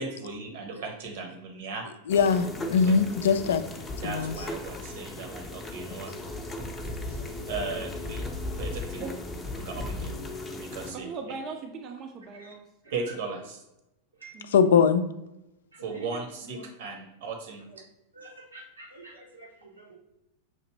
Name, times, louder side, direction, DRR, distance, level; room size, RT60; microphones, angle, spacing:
voice 1, 0.0-1.9 2.8-3.0 4.0-6.1 7.5-8.3 8.5-9.1 9.4-10.2 10.5-11.1 12.9-13.6 15.8-17.6, right 4 dB, 50° right, 3 dB, 0.9 m, -37 dB
voice 2, 2.1-3.6 4.0-4.3 14.5-15.0, left 6 dB, 60° left, 10 dB, 0.3 m, -21 dB
sound 1, 2.1-10.9, left 2 dB, 15° left, 0.6 m, -36 dB
voice 3, 10.9-12.6 14.3-14.8, right 5 dB, 35° right, 3 dB, 0.5 m, -39 dB
voice 4, 15.7-16.0 16.5-16.6 17.7-17.8 18.1-20.0, right 2 dB, 80° right, -1 dB, 1.0 m, -48 dB
5.9 x 2.8 x 3.0 m, 0.90 s
figure-of-eight pair, 90°, 0 cm